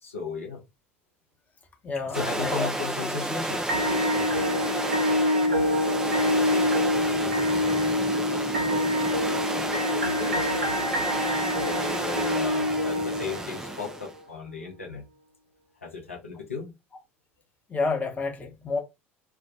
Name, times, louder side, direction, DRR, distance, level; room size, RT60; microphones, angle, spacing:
voice 1, 0.0-0.6 2.0-10.5 10.8-15.0 15.8-16.7, left 4 dB, 90° left, 0.6 m, -37 dB
voice 2, 1.8-2.7 17.7-18.8, left 3 dB, 20° left, 0.8 m, -29 dB
sound 1, 2.1-14.2, right 1 dB, 10° right, 0.4 m, -32 dB
sound 2, 3.7-13.7, left 1 dB, 85° right, 0.5 m, -26 dB
2.1 x 2.1 x 2.7 m
figure-of-eight pair, 70°, 7 cm